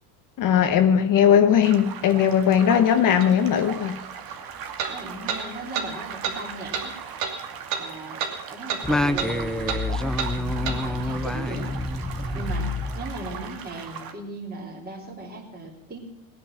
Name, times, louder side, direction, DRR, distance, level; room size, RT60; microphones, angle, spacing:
voice 1, 0.4-4.0, left 8 dB, 40° left, 7 dB, 1.3 m, -19 dB
sound 1, 1.6-14.1, right 7 dB, 50° right, 2.1 m, -39 dB
sound 2, 3.2-3.3 4.8-4.9 5.3-5.4 5.7-5.9 6.2-6.4 6.7-6.9 7.2-7.3 7.7-7.8 8.2-8.3 8.7-8.8 9.2-9.3 9.7-9.8 10.2-10.3 10.6-10.8, right 7 dB, 65° right, 2.8 m, -28 dB
voice 2, 4.8-6.9 7.8-8.2 8.5-11.7 12.3-12.7 12.9-16.0, right 2 dB, 20° right, 0 dB, 3.6 m, -37 dB
Singing, 8.8-13.6, left 1 dB, ahead, 0.6 m, -27 dB
18.5 x 9.9 x 6.1 m, 0.90 s
cardioid pair, 135°, 47 cm